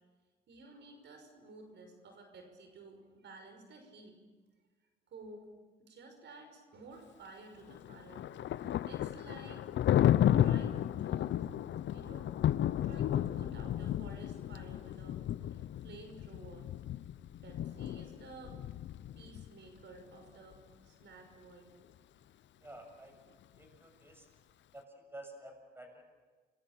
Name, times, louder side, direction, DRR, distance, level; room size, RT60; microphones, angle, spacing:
voice 1, 0.5-4.2 5.1-5.4 5.8-8.3 8.5-9.8 10.3-11.4 11.8-12.3 12.8-16.7 17.4-18.6 19.1-21.7, right 3 dB, 65° right, 5 dB, 5.7 m, -53 dB
Thunder, 7.7-19.5, left 11 dB, 65° left, 0.8 m, -32 dB
voice 2, 22.6-23.2 23.6-24.3 24.7-26.0, right 1 dB, 10° right, 4 dB, 7.1 m, -51 dB
28.0 x 23.5 x 7.5 m, 1.4 s
cardioid pair, 90°, 20 cm